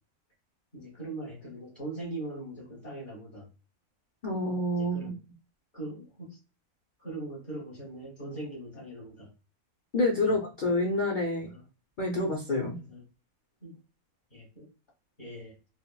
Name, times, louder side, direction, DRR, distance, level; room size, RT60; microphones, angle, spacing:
voice 1, 0.7-3.5 4.7-5.2 5.7-6.4 7.0-9.3 10.2-10.3 11.4-11.6 12.7-13.0 13.6-13.8 14.3-14.7 15.2-15.6, right 2 dB, 40° left, -5 dB, 1.2 m, -41 dB
voice 2, 4.2-5.1 9.9-11.5 12.0-12.8, left 1 dB, 75° left, 0 dB, 0.4 m, -28 dB
3.6 x 2.1 x 2.2 m, 0.34 s
omnidirectional pair, 1.6 m